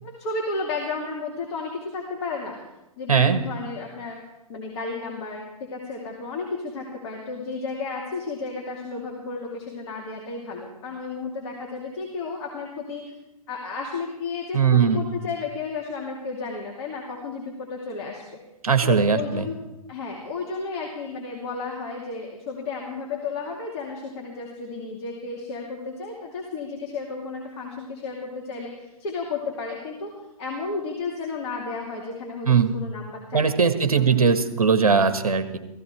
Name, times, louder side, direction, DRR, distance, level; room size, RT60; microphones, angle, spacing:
voice 1, 0.0-4.2 4.5-13.1 13.5-18.2 18.8-19.6 19.9-30.1 30.4-34.1, left 4 dB, 45° left, -1 dB, 2.7 m, -33 dB
voice 2, 3.1-3.4 14.5-15.0 18.6-19.5 32.5-32.7 33.3-35.6, right 6 dB, 75° right, 8 dB, 1.6 m, -19 dB
15.5 x 15.5 x 4.5 m, 0.97 s
figure-of-eight pair, 115°, 19 cm